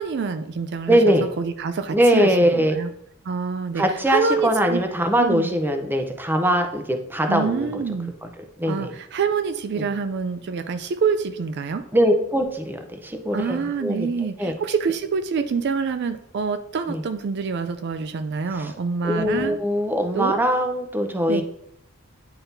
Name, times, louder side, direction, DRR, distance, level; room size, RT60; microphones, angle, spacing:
voice 1, 0.0-2.9 3.2-4.8 5.2-5.5 7.3-8.1 8.7-11.8 13.3-19.6 20.1-20.4 21.3-21.4, right 5 dB, 55° right, 10 dB, 0.4 m, -26 dB
voice 2, 0.9-1.3 1.9-2.8 3.7-7.8 8.2-8.3 8.6-8.9 9.8-9.9 11.9-14.1 14.4-14.5 16.9-17.0 18.5-18.7 19.0-21.4, equal, 10° right, 5 dB, 0.6 m, -21 dB
9.5 x 4.0 x 2.7 m, 0.74 s
head